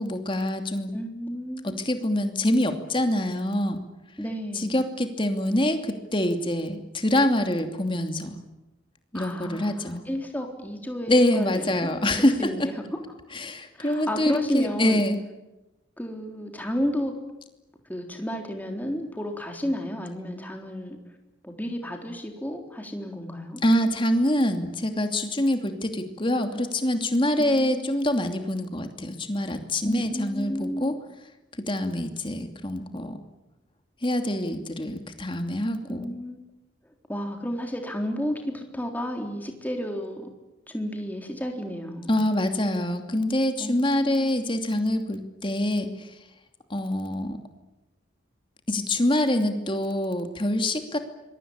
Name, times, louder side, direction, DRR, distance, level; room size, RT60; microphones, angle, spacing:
voice 1, 0.0-0.9 1.6-3.8 4.5-8.4 9.1-10.1 11.1-12.7 13.3-15.2 23.6-31.0 31.6-33.2 34.0-36.1 42.1-46.1 46.7-47.4 48.7-51.0, left 1 dB, 25° left, 6 dB, 2.7 m, -25 dB
voice 2, 0.9-1.7 4.2-4.8 9.1-13.0 13.8-15.0 16.0-17.1 17.9-21.0 21.4-23.6 27.4-27.7 29.8-30.9 35.9-36.4 37.1-40.3 40.7-42.2 43.6-44.3, equal, 10° left, 3 dB, 3.8 m, -32 dB
26.0 x 22.5 x 8.9 m, 1.0 s
head